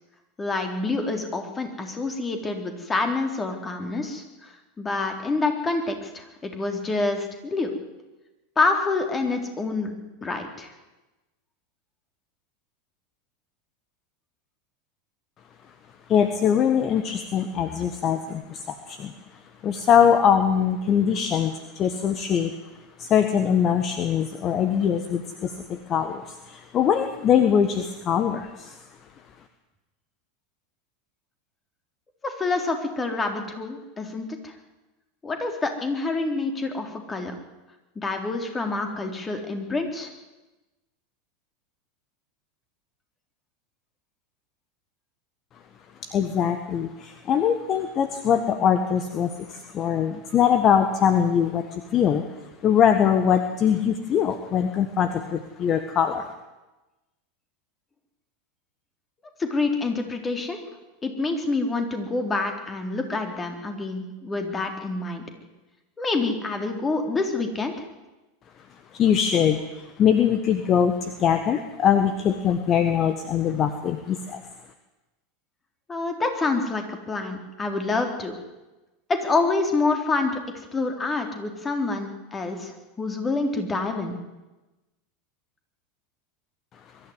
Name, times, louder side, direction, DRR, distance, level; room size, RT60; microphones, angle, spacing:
voice 1, 0.4-7.7 8.6-9.9 10.2-10.7 32.2-34.5 35.2-37.3 38.0-40.1 59.4-60.6 61.0-65.2 66.0-67.9 75.9-78.3 79.1-80.4 80.7-84.2, left 3 dB, 20° left, 5 dB, 3.7 m, -27 dB
voice 2, 16.1-19.1 19.6-22.5 23.0-28.8 46.0-52.2 52.6-56.3 68.9-74.4, left 8 dB, 35° left, 8 dB, 1.5 m, -22 dB
22.5 x 12.5 x 9.8 m, 1.1 s
figure-of-eight pair, 85°, 0 cm